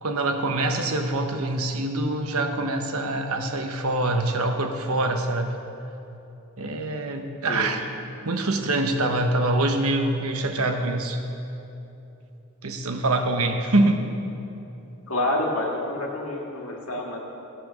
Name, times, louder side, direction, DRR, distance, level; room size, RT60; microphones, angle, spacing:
voice 1, 0.0-5.5 6.6-7.9 8.2-11.2 12.6-14.0, right 2 dB, 75° right, 5 dB, 1.1 m, -25 dB
voice 2, 15.1-17.2, left 1 dB, 70° left, -1 dB, 2.1 m, -28 dB
15.5 x 7.8 x 6.3 m, 2.9 s
head